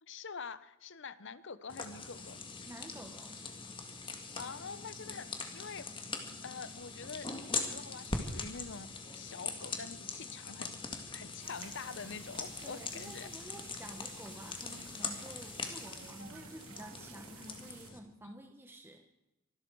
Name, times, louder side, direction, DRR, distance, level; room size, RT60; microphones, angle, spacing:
voice 1, 0.0-2.4 4.3-6.1 6.4-7.3 7.6-10.8 11.1-13.3, left 5 dB, 60° left, 15 dB, 0.9 m, -46 dB
sound 1, 1.7-18.0, left 4 dB, 25° left, 2.0 m, -42 dB
voice 2, 2.7-3.4 12.6-19.0, right 1 dB, 10° right, 3 dB, 1.2 m, -50 dB
sound 2, 11.4-17.9, right 6 dB, 85° right, 1.8 m, -53 dB
24.5 x 12.5 x 4.7 m, 0.94 s
head